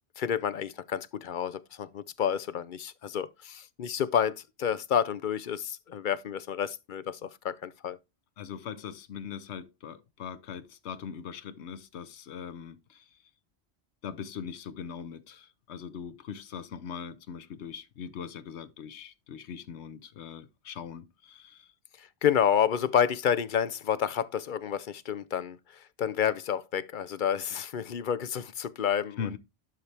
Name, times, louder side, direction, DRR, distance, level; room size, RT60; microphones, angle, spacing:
voice 1, 0.2-8.0 22.0-29.2, left 8 dB, 55° left, 0.7 m, -29 dB
voice 2, 8.4-13.2 14.0-21.7 29.2-29.4, left 7 dB, 85° left, 1.1 m, -41 dB
11.5 x 4.2 x 3.3 m
omnidirectional pair, 1.1 m